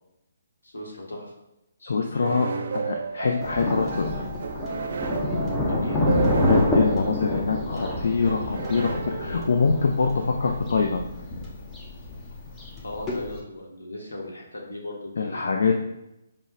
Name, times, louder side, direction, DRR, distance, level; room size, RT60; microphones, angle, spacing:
voice 1, 0.6-1.4 5.6-6.1 12.8-15.4, left 1 dB, 80° left, 0 dB, 1.0 m, -37 dB
voice 2, 1.8-4.2 6.5-11.1 15.2-15.8, left 4 dB, 65° left, 2 dB, 0.3 m, -24 dB
sound 1, 2.2-9.9, right 5 dB, 60° right, 0.3 m, -33 dB
Thunder, 3.4-13.4, left 1 dB, 20° left, 0.6 m, -28 dB
5.3 x 2.1 x 2.5 m, 0.89 s
figure-of-eight pair, 140°, 0 cm